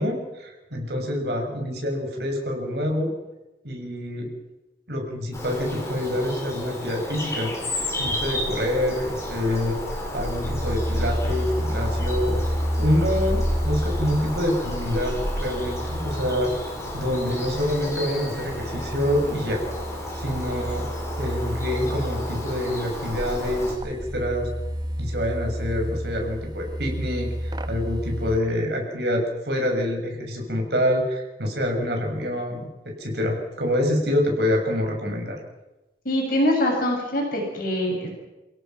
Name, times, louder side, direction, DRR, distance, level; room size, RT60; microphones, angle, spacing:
voice 1, 0.0-3.1 3.6-4.3 4.9-7.5 8.0-9.8 10.1-12.4 12.8-16.5 16.9-19.6 20.1-20.9 21.2-24.5 25.0-35.4, left 1 dB, 65° right, 1 dB, 6.9 m, -26 dB
Bird vocalization bird call bird song, 5.3-23.7, left 1 dB, 15° left, 4.9 m, -32 dB
sound 1, 10.3-28.4, equal, 25° right, 1.0 m, -31 dB
voice 2, 36.0-38.1, left 1 dB, 50° left, 0 dB, 6.7 m, -23 dB
30.0 x 17.0 x 6.0 m, 1.0 s
head